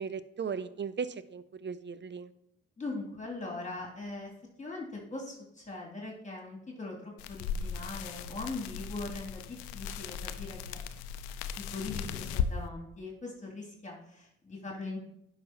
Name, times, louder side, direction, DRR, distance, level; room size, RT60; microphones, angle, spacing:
voice 1, 0.0-2.3, right 6 dB, 35° right, 15 dB, 0.6 m, -37 dB
voice 2, 2.8-4.3 4.6-10.8 11.6-15.0, left 2 dB, 20° left, -2 dB, 2.6 m, -41 dB
sound 1, 7.2-12.5, left 7 dB, 90° left, 0.5 m, -37 dB
9.9 x 5.8 x 2.8 m, 0.80 s
hypercardioid pair, 45°, 32 cm